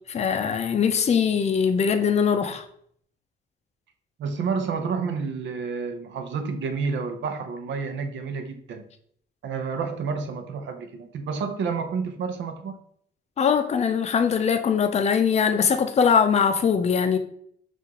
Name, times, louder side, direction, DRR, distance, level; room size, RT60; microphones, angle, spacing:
voice 1, 0.1-2.6 13.4-17.2, left 6 dB, 35° left, 0.5 m, -21 dB
voice 2, 4.2-8.9 9.4-12.8, right 5 dB, 70° right, 0.7 m, -30 dB
5.7 x 2.5 x 2.9 m
cardioid pair, 90°, 20 cm